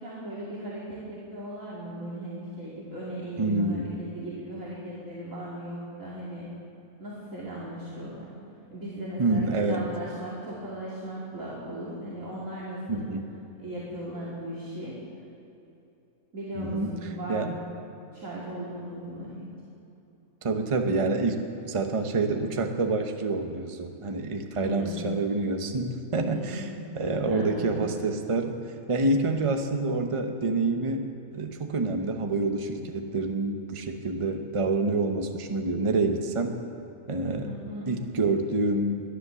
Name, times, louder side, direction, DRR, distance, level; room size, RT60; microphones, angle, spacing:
voice 1, 0.0-6.5 7.0-8.3 8.7-13.0 13.6-15.0 16.3-17.6 18.1-19.5 24.5-25.1 26.3-26.9 27.2-27.9 37.4-37.9, right 1 dB, 55° right, -7 dB, 2.8 m, -37 dB
voice 2, 3.4-4.0 9.2-9.9 12.9-13.3 16.6-16.9 17.3-17.6 20.4-26.7 26.9-28.5 28.9-31.0 31.3-36.5 37.1-37.5 37.9-39.0, right 3 dB, 25° right, 5 dB, 0.8 m, -27 dB
18.5 x 11.5 x 6.9 m, 2.9 s
omnidirectional pair, 1.7 m